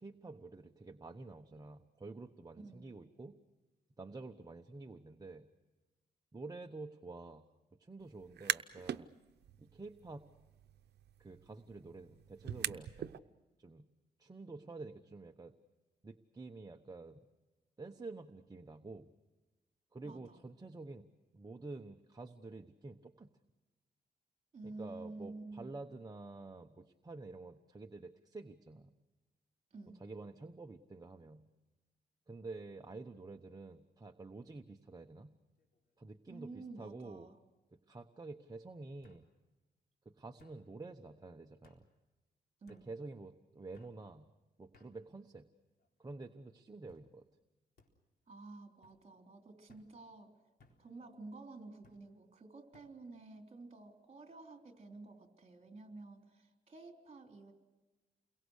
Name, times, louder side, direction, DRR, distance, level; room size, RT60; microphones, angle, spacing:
voice 1, 0.0-3.4 4.0-5.5 6.3-7.5 7.8-9.1 9.6-10.2 11.2-13.2 13.6-13.9 14.2-15.5 16.0-17.3 17.8-19.1 19.9-21.1 21.3-23.3 24.6-28.9 30.0-31.5 32.3-35.3 36.0-37.3 37.9-39.3 40.0-41.8 42.7-44.3 44.6-45.5 46.0-47.3, right 3 dB, 25° right, 4 dB, 1.1 m, -49 dB
voice 2, 2.6-2.9 20.0-20.4 24.5-25.8 29.7-30.0 36.3-37.4 42.6-42.8 48.3-50.3 50.8-57.5, right 3 dB, 40° right, 4 dB, 3.7 m, -51 dB
sound 1, 8.2-9.0 9.4-13.2, right 10 dB, 85° right, 0.8 m, -42 dB
sound 2, 35.6-36.0 36.3-36.9 38.0-38.1 39.0-39.2 40.4-40.6 41.6-41.8 42.7-42.9 43.7-44.0 44.7-44.9 45.7-46.1 46.9-47.1 47.8-47.9 48.8-49.0 49.7-49.9 50.6-50.8 51.8-52.0 52.7-52.9, left 3 dB, 70° left, 4.2 m, -67 dB
29.5 x 22.5 x 6.5 m, 1.1 s
cardioid pair, 105°, 17 cm